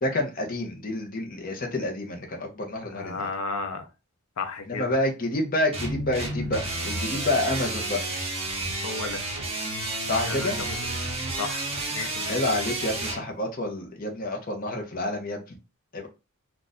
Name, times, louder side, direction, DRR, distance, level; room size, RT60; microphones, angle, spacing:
voice 1, 0.0-3.3 4.7-8.0 10.1-10.6 12.3-15.4 15.9-16.1, left 1 dB, 40° left, 0.7 m, -28 dB
voice 2, 2.9-3.9 4.4-4.9 8.8-9.3 10.2-10.8 11.4-12.4, left 4 dB, 90° left, 0.5 m, -33 dB
sound 1, 5.7-13.2, right 2 dB, 25° right, 0.9 m, -31 dB
2.5 x 2.4 x 3.9 m
head